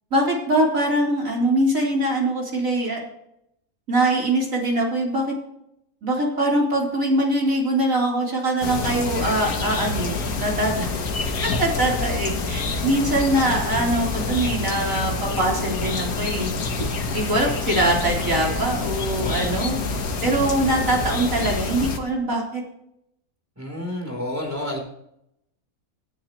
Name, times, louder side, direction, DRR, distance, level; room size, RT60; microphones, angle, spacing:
voice 1, 0.1-3.0 3.9-5.3 6.0-10.9 11.4-16.6 17.1-19.8 20.2-22.6, right 1 dB, 65° right, -2 dB, 4.4 m, -23 dB
sound 1, 8.6-22.0, left 3 dB, 90° left, 1.8 m, -27 dB
voice 2, 23.6-24.8, left 1 dB, 10° right, 1 dB, 3.7 m, -29 dB
17.5 x 10.5 x 3.1 m, 0.76 s
omnidirectional pair, 1.5 m